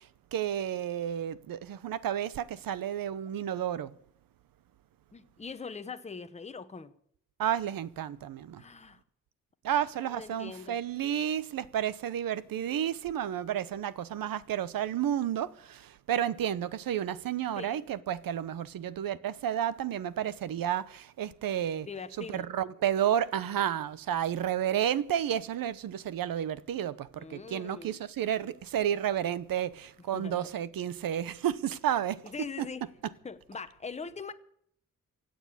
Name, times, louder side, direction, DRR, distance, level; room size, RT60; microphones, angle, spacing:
voice 1, 0.3-3.9 7.4-8.6 9.6-21.9 22.2-32.2 32.6-32.7, right 10 dB, 90° right, 0.9 m, -31 dB
voice 2, 5.1-6.9 8.6-9.0 9.7-10.8 17.6-17.8 21.6-22.5 27.2-28.0 30.1-30.5 32.2-32.9 33.2-34.3, left 5 dB, 20° left, 0.8 m, -42 dB
16.5 x 8.8 x 8.4 m
wide cardioid pair, 165°, 33 cm